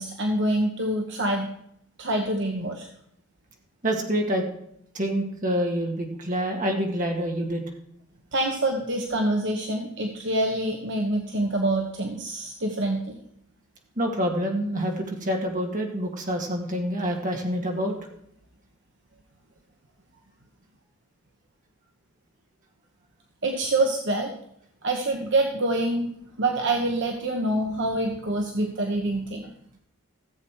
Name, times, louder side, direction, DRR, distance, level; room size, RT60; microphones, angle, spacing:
voice 1, 0.0-1.5 2.0-2.9 8.3-13.2 23.4-24.3 24.8-26.1 26.4-29.4, right 1 dB, 55° right, 2 dB, 1.1 m, -26 dB
voice 2, 3.8-4.4 4.9-7.6 14.0-17.9, equal, 35° right, 1 dB, 2.0 m, -27 dB
15.0 x 7.7 x 4.7 m, 0.74 s
head